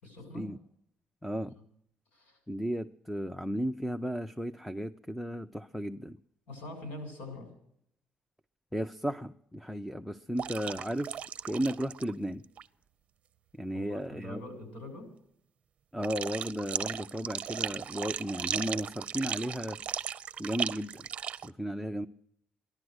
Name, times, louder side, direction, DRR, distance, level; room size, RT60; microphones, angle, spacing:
voice 1, 0.0-0.5 1.5-1.6 2.1-2.4 6.5-7.5 13.7-15.1, left 1 dB, 80° left, 6 dB, 7.1 m, -44 dB
voice 2, 1.2-1.5 2.5-6.2 8.7-12.4 13.6-14.4 15.9-19.8 20.4-21.1 21.4-22.1, equal, ahead, 10 dB, 0.6 m, -34 dB
sound 1, 10.4-12.1 12.4-12.6 16.0-21.5, right 9 dB, 45° right, 0.6 m, -36 dB
15.5 x 11.5 x 8.0 m, 0.71 s
cardioid pair, 135°, 3 cm